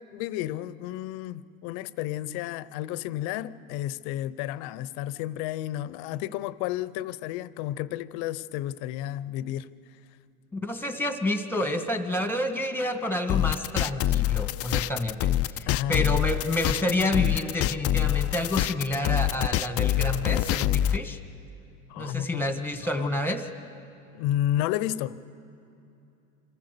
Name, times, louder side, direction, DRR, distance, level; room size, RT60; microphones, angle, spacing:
voice 1, 0.0-9.7 15.7-16.0 21.9-22.4 22.9-23.1 24.1-25.3, left 13 dB, 65° left, 0.8 m, -31 dB
voice 2, 10.5-21.2 22.0-23.5, left 1 dB, 5° left, 1.7 m, -29 dB
sound 1, 13.3-21.0, left 13 dB, 35° left, 0.5 m, -25 dB
26.5 x 14.5 x 6.8 m
supercardioid pair, 100°, 42 cm